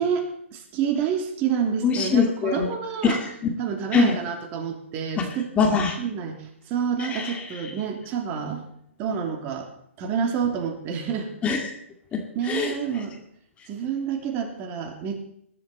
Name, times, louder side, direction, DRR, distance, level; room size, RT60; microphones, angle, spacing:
voice 1, 0.0-3.2 3.6-5.5 6.0-8.6 9.0-9.7 10.0-11.3 12.3-13.1 13.7-15.2, right 7 dB, 30° right, 4 dB, 2.8 m, -28 dB
voice 2, 1.8-2.7 3.0-3.6 3.9-4.2 5.2-6.0 7.0-7.7 11.4-11.7 12.1-12.8, left 5 dB, 15° left, 3 dB, 2.1 m, -24 dB
21.0 x 11.5 x 4.2 m, 0.69 s
figure-of-eight pair, 130°, 7 cm